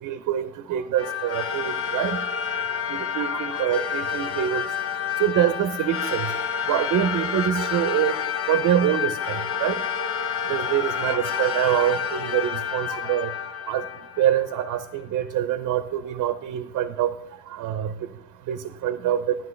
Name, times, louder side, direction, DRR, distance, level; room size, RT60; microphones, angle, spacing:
voice 1, 0.0-2.2 2.9-4.6 5.2-6.3 6.7-8.2 8.5-9.8 10.5-13.3 13.7-13.8 14.2-17.1 17.5-17.9 18.5-19.4, right 11 dB, 85° right, 10 dB, 0.6 m, -25 dB
sound 1, 1.0-14.7, left 7 dB, 50° left, 0.7 m, -29 dB
11.0 x 10.5 x 3.2 m, 0.76 s
cardioid pair, 90°, 30 cm